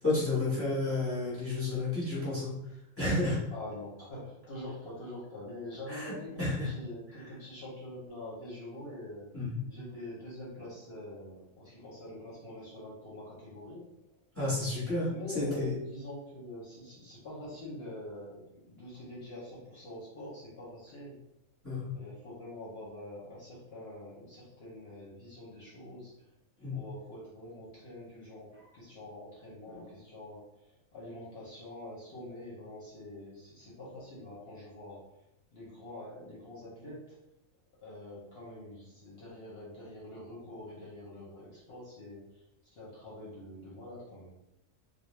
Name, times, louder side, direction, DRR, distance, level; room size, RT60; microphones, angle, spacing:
voice 1, 0.0-2.5 3.0-3.4 5.9-6.1 6.4-6.7 9.3-9.6 14.3-15.1 15.3-15.7 21.6-21.9 26.6-26.8, left 2 dB, 10° left, -8 dB, 0.9 m, -31 dB
voice 2, 3.5-9.3 9.7-13.9 15.0-21.1 21.9-26.3 26.6-35.0 35.5-37.2 37.8-44.3, left 1 dB, 55° left, -7 dB, 0.9 m, -45 dB
2.3 x 2.2 x 3.0 m, 0.87 s
omnidirectional pair, 1.4 m